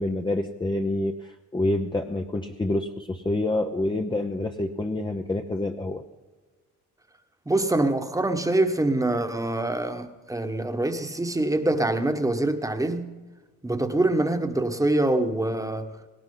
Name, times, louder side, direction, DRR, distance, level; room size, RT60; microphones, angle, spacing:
voice 1, 0.0-6.0, left 2 dB, 15° left, 4 dB, 0.8 m, -27 dB
voice 2, 7.5-13.1 13.6-15.9, right 2 dB, 10° right, 7 dB, 1.3 m, -25 dB
18.0 x 17.5 x 3.9 m, 1.3 s
cardioid pair, 90°, 30 cm